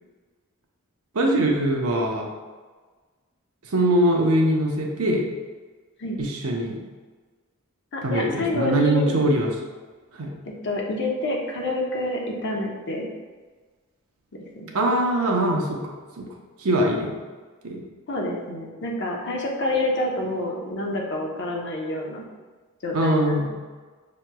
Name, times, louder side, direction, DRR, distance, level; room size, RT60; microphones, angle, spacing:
voice 1, 1.1-2.3 3.7-5.2 6.2-6.8 8.0-9.5 10.2-10.3 14.7-15.8 16.2-16.3 16.6-17.1 17.6-17.8 22.9-23.5, right 1 dB, 75° right, 0 dB, 0.7 m, -22 dB
voice 2, 7.9-9.1 10.6-13.1 14.6-14.7 18.1-22.2 22.8-23.5, left 1 dB, 55° left, 0 dB, 0.7 m, -28 dB
5.7 x 3.0 x 2.2 m, 1.4 s
head